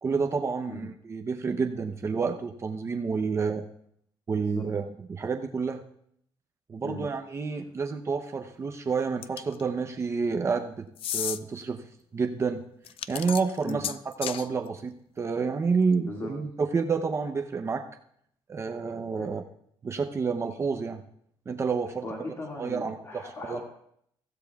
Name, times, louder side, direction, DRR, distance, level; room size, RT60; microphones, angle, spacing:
voice 1, 0.0-3.6 4.3-5.8 6.7-10.9 11.1-11.8 12.1-12.7 13.1-17.9 18.5-19.4 19.8-21.0 21.5-22.1 22.6-23.6, right 5 dB, 30° right, 5 dB, 0.7 m, -29 dB
sound 1, 9.2-9.6 11.0-11.4 12.9-14.5, left 10 dB, 75° left, 0.5 m, -33 dB
voice 2, 22.0-23.6, left 2 dB, 30° left, -1 dB, 2.0 m, -38 dB
23.0 x 15.5 x 2.3 m, 0.68 s
cardioid pair, 155°, 10 cm